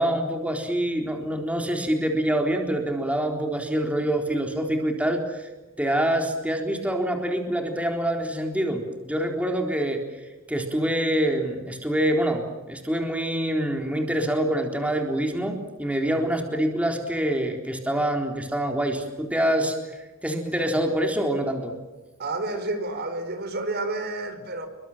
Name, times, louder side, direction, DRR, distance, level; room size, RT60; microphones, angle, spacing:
voice 1, 0.0-5.5 5.8-21.7, right 1 dB, 5° right, 3.9 m, -26 dB
voice 2, 22.2-24.7, right 2 dB, 50° right, 4.6 m, -30 dB
29.0 x 24.0 x 7.5 m
head